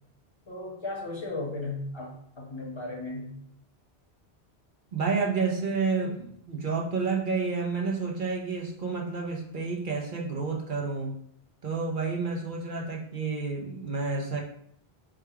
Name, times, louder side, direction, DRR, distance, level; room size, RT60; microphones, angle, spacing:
voice 1, 0.5-3.4, left 2 dB, 25° left, -1 dB, 1.1 m, -36 dB
voice 2, 4.9-11.2 11.6-14.4, right 4 dB, 50° right, 0 dB, 0.9 m, -30 dB
4.9 x 2.4 x 4.5 m, 0.67 s
omnidirectional pair, 1.1 m